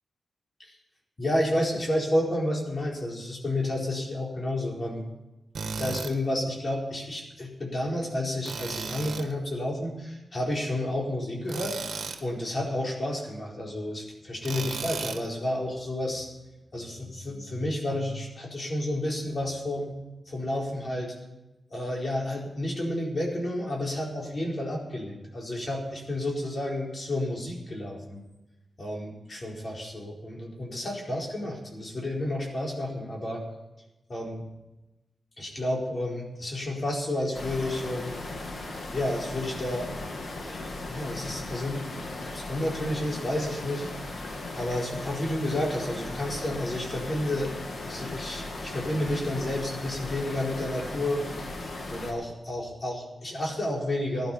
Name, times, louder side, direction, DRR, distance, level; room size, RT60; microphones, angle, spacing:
voice 1, 1.2-5.0 5.7-11.8 12.2-16.3 16.7-19.9 20.3-21.1 21.7-28.2 28.8-33.4 34.1-34.4 35.4-38.1 38.9-39.9 40.4-41.9 42.2-43.9 44.6-47.5 47.8-51.3 51.9-54.3, left 1 dB, 45° left, -2 dB, 4.5 m, -31 dB
Tools, 5.5-6.1 8.4-9.3 11.5-12.2 14.4-15.3, right 5 dB, 80° right, 1.4 m, -35 dB
sound 1, 37.3-52.1, left 2 dB, 65° left, 2.6 m, -37 dB
16.0 x 11.5 x 5.6 m, 1.0 s
wide cardioid pair, 85°, 0 cm